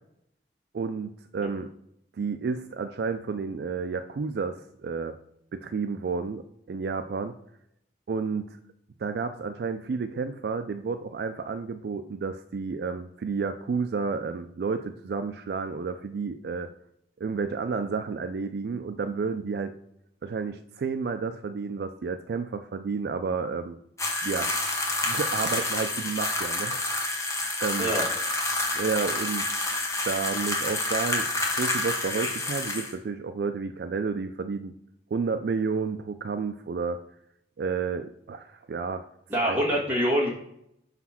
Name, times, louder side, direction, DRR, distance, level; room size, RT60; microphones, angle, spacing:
voice 1, 0.7-1.7 2.1-5.2 5.5-7.3 8.1-8.5 9.0-16.7 17.2-19.7 20.2-23.8 24.2-24.5 25.0-27.1 27.6-27.9 28.7-29.6 30.0-31.3 31.6-34.7 35.1-37.0 37.6-39.0 39.4-39.6, right 5 dB, 60° right, 9 dB, 0.3 m, -31 dB
sound 1, 24.0-32.9, left 2 dB, 15° left, 1.0 m, -28 dB
voice 2, 39.3-40.3, equal, 10° right, -4 dB, 1.7 m, -25 dB
5.2 x 4.0 x 5.7 m, 0.77 s
head